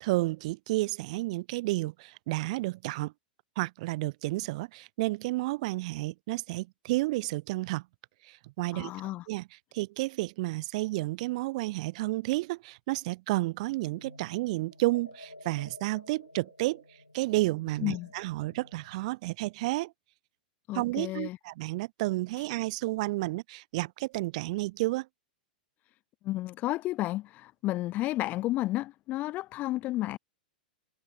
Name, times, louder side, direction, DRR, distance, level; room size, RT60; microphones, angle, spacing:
voice 1, 0.0-3.1 3.6-7.8 8.3-8.9 9.3-9.4 9.7-16.8 17.1-19.9 20.7-25.1, right 20 dB, 45° right, 0.6 m, -31 dB
voice 2, 8.7-9.2 17.8-18.1 20.7-21.4 26.2-30.2, left 16 dB, 30° left, 1.0 m, -32 dB
sound 1, 13.7-19.0, left 2 dB, 85° left, 4.8 m, -52 dB
figure-of-eight pair, 100°, 5 cm